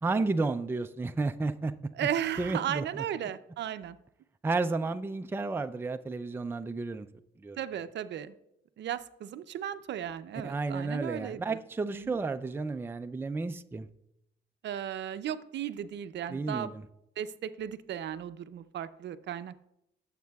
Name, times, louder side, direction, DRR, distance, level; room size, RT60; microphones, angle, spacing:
voice 1, 0.0-1.7 2.0-2.1 2.4-3.0 4.4-7.1 7.4-7.6 10.4-13.9 16.3-16.8, right 3 dB, 10° right, 9 dB, 0.4 m, -32 dB
voice 2, 1.9-4.0 7.6-8.4 8.8-11.6 11.9-12.2 14.6-16.7 17.2-19.6, right 10 dB, 65° right, 12 dB, 0.5 m, -35 dB
14.5 x 7.4 x 2.3 m, 0.80 s
cardioid pair, 90°, 20 cm